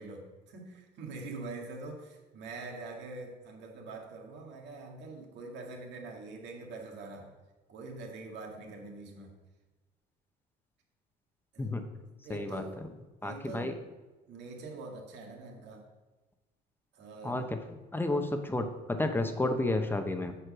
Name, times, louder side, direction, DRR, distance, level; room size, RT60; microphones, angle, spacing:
voice 1, 0.0-7.4 7.7-9.4 11.5-11.8 12.2-12.8 13.2-13.8 14.3-15.9 16.9-17.5 19.2-19.3, right 3 dB, 65° right, 1 dB, 2.0 m, -44 dB
voice 2, 12.3-12.6 13.2-13.7 17.2-17.6 17.9-20.4, left 2 dB, 10° left, 6 dB, 1.0 m, -31 dB
7.9 x 4.3 x 6.2 m, 1.2 s
supercardioid pair, 95°, 19 cm